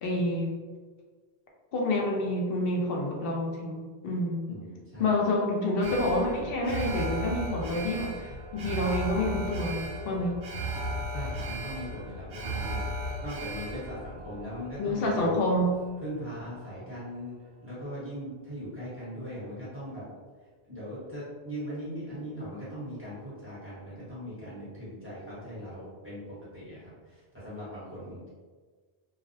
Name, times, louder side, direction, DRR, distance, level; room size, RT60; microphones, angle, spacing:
voice 1, 0.0-0.6 1.7-4.5 5.0-10.4 14.8-15.8, left 1 dB, 65° left, -1 dB, 0.7 m, -28 dB
voice 2, 4.5-5.1 11.1-15.4 16.0-17.4 17.6-20.0 20.7-28.3, equal, 15° right, -11 dB, 0.9 m, -40 dB
Alarm, 5.8-16.1 16.4-16.5, right 1 dB, 70° right, 0.8 m, -36 dB
2.4 x 2.0 x 2.6 m, 1.5 s
omnidirectional pair, 1.1 m